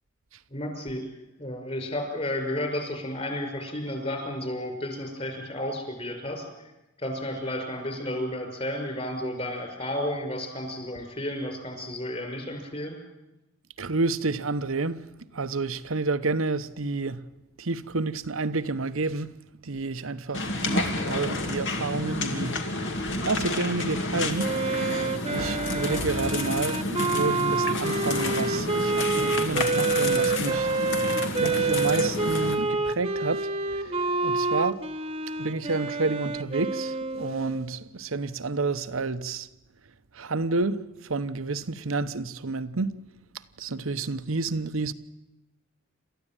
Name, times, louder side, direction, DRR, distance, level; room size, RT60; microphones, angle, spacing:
voice 1, 0.5-1.1 1.4-6.5 7.0-13.0, left 1 dB, 30° left, 5.9 m, -32 dB
voice 2, 13.8-17.3 17.6-30.7 31.0-31.1 31.4-34.8 35.4-39.5 40.1-43.0 43.6-44.9, right 3 dB, 85° right, 1.0 m, -30 dB
sound 1, 20.3-32.6, left 2 dB, 65° left, 2.4 m, -30 dB
Wind instrument woodwind instrument, 24.4-37.8, right 3 dB, 30° right, 1.2 m, -28 dB
28.0 x 14.0 x 9.1 m
head